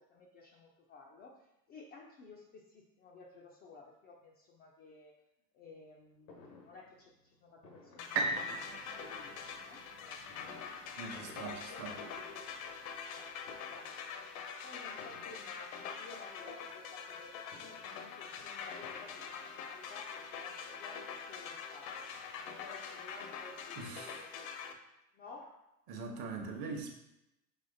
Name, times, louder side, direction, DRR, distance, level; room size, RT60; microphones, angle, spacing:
voice 1, 0.0-5.2 5.5-10.6 11.4-12.5 13.1-14.1 14.6-22.1 22.5-24.5 25.1-25.6, left 3 dB, 25° left, -2 dB, 0.3 m, -55 dB
Fireworks, 6.3-9.5 10.3-13.2 13.4-14.1 15.0-16.1 17.2-19.9 20.7-20.8 21.1-21.2 21.5-22.7 23.0-23.1 23.3-23.4, left 3 dB, 85° left, 1.0 m, -60 dB
sound 1, 8.0-24.7, left 6 dB, 60° left, 0.7 m, -44 dB
sound 2, 8.1-12.1 12.7-12.8, right 3 dB, 80° right, 0.7 m, -39 dB
voice 2, 11.0-11.9 23.8-24.2 25.9-26.9, right 4 dB, 45° right, 3 dB, 0.9 m, -42 dB
5.7 x 3.0 x 2.6 m, 0.89 s
hypercardioid pair, 85°, 49 cm